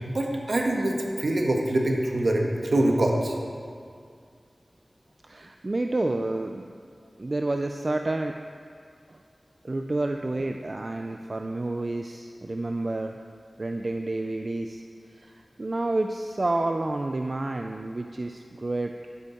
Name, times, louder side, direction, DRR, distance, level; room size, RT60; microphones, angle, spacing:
voice 1, 0.1-3.3, right 1 dB, 75° right, 0 dB, 1.4 m, -24 dB
voice 2, 5.2-6.7 7.2-8.4 9.6-13.1 13.6-14.8 15.1-15.3 15.6-18.9, right 2 dB, 50° right, 4 dB, 0.5 m, -29 dB
12.0 x 9.9 x 4.5 m, 2.2 s
cardioid pair, 45°, 0 cm